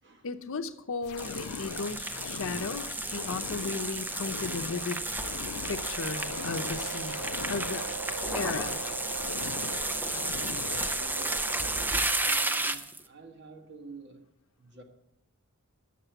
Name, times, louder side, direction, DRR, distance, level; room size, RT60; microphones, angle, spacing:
voice 1, 0.2-2.9 3.1-5.0 5.7-7.2 7.5-7.8 8.3-8.8, left 4 dB, 65° left, 0.7 m, -35 dB
sound 1, 1.0-11.0, left 8 dB, 85° left, 0.3 m, -41 dB
sound 2, 1.2-13.0, right 2 dB, 10° right, 0.5 m, -33 dB
sound 3, 4.7-12.8, right 5 dB, 80° right, 0.5 m, -42 dB
voice 2, 10.1-14.3 14.6-14.8, right 2 dB, 55° right, 1.6 m, -49 dB
10.5 x 6.7 x 7.9 m
head